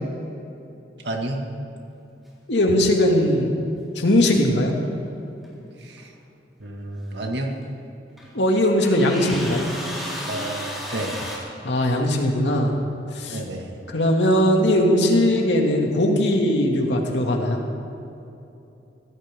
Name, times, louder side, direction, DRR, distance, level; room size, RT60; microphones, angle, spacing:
voice 1, 1.0-1.4 5.8-6.1 6.6-7.5 10.3-11.2 13.3-13.7, right 1 dB, 80° right, 2 dB, 2.1 m, -30 dB
voice 2, 2.5-3.6 4.0-4.8 8.3-9.7 11.6-12.7 13.1-13.4 13.9-17.6, left 1 dB, 85° left, 1 dB, 2.3 m, -19 dB
sound 1, 2.7-3.4 5.4-5.5 6.0-6.1 7.6-7.7 8.2-8.3 8.8-11.4, equal, ahead, 4.1 m, -33 dB
23.5 x 16.5 x 3.7 m, 2.8 s
head